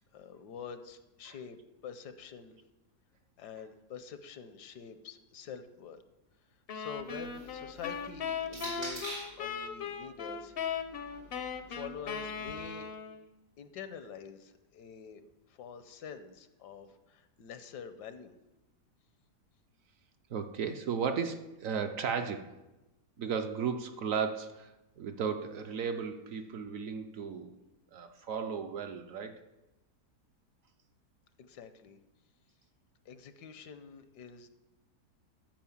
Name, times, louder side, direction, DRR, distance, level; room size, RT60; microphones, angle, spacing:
voice 1, 0.1-1.6 1.8-2.6 3.4-6.0 6.7-10.5 11.7-12.9 13.6-18.3 31.4-32.0 33.0-34.5, left 7 dB, 80° left, 10 dB, 1.4 m, -46 dB
sound 1, 6.7-13.3, left 6 dB, 55° left, 0.6 m, -38 dB
sound 2, 7.0-9.5 10.4-12.5, right 1 dB, 85° right, 4.6 m, -46 dB
voice 2, 20.3-22.6 23.2-27.5 27.9-29.4, right 6 dB, 65° right, 6 dB, 0.9 m, -35 dB
12.0 x 5.2 x 7.1 m, 1.0 s
omnidirectional pair, 1.8 m